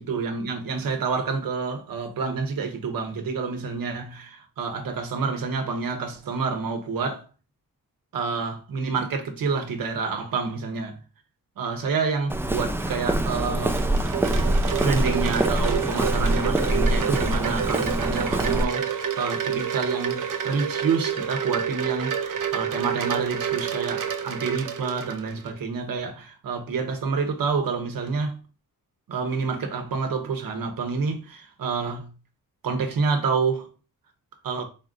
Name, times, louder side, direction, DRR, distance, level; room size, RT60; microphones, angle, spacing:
voice 1, 0.0-7.2 8.1-11.0 11.6-13.8 14.8-28.4 29.1-32.1 32.6-33.7 34.4-34.7, right 5 dB, 90° right, 1.0 m, -28 dB
Walk footsteps, 12.3-18.6, right 1 dB, 5° right, 0.4 m, -24 dB
Wind chime, 13.2-25.5, right 8 dB, 70° right, 0.6 m, -29 dB
4.1 x 2.7 x 3.7 m
wide cardioid pair, 105°, 34 cm